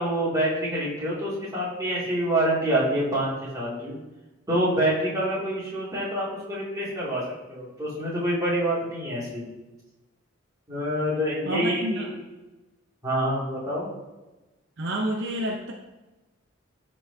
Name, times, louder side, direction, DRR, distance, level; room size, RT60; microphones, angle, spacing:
voice 1, 0.0-4.0 4.5-9.4 10.7-12.0 13.0-13.9, right 1 dB, 15° right, -8 dB, 2.5 m, -26 dB
voice 2, 11.5-12.1 14.8-15.7, right 1 dB, 60° right, 1 dB, 0.7 m, -29 dB
13.0 x 4.5 x 2.8 m, 1.1 s
head